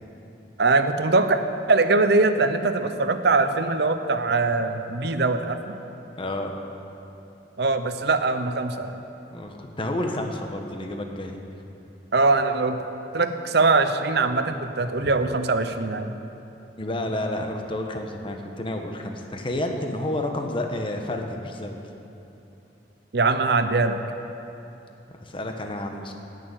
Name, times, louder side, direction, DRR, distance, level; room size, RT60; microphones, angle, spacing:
voice 1, 0.6-1.4 1.7-5.7 7.6-9.0 12.1-12.8 13.1-16.1 23.1-24.0, right 3 dB, 60° right, 9 dB, 0.8 m, -22 dB
voice 2, 6.2-6.5 9.3-11.4 16.8-21.8 25.2-26.1, left 1 dB, 30° left, 3 dB, 1.1 m, -30 dB
16.5 x 6.7 x 8.8 m, 2.9 s
head